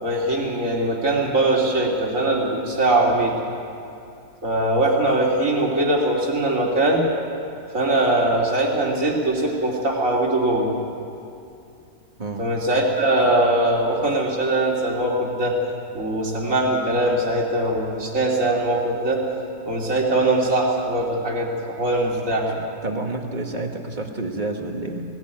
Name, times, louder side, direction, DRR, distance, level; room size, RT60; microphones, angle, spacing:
voice 1, 0.0-3.4 4.4-7.0 7.7-10.7 12.4-15.6 15.9-19.2 19.7-22.6, right 1 dB, 55° right, -2 dB, 3.4 m, -21 dB
voice 2, 12.2-12.5 22.8-25.0, right 2 dB, 30° right, 3 dB, 1.8 m, -29 dB
19.5 x 17.0 x 9.1 m, 2.6 s
omnidirectional pair, 1.7 m